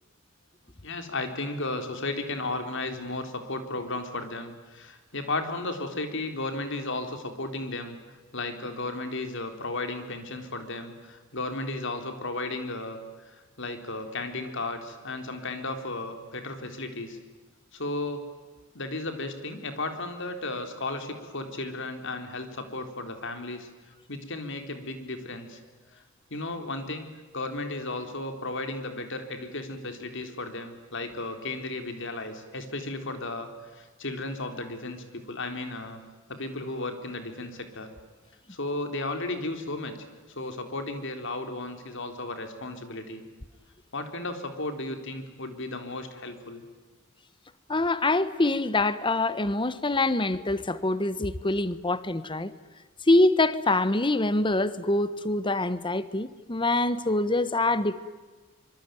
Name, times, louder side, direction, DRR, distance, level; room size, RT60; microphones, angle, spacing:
voice 1, 0.8-8.0 8.3-17.2 17.7-18.2 18.7-23.7 24.1-25.6 25.9-26.0 26.3-36.0 36.3-37.9 38.5-40.0 40.3-43.2 43.9-46.6, left 2 dB, 60° left, 3.9 m, -34 dB
voice 2, 47.7-52.5 53.1-58.0, left 2 dB, 25° left, 1.2 m, -25 dB
25.5 x 25.0 x 9.3 m
head